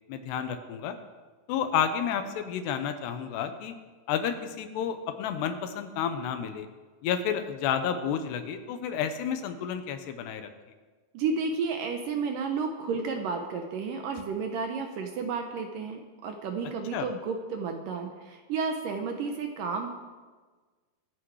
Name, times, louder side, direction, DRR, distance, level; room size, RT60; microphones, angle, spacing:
voice 1, 0.1-1.0 1.5-3.7 4.1-6.7 7.0-10.5 16.9-17.1, left 8 dB, 85° left, 8 dB, 3.1 m, -30 dB
voice 2, 11.1-19.9, right 5 dB, 70° right, 4 dB, 2.2 m, -32 dB
24.0 x 8.7 x 4.8 m, 1.4 s
omnidirectional pair, 4.7 m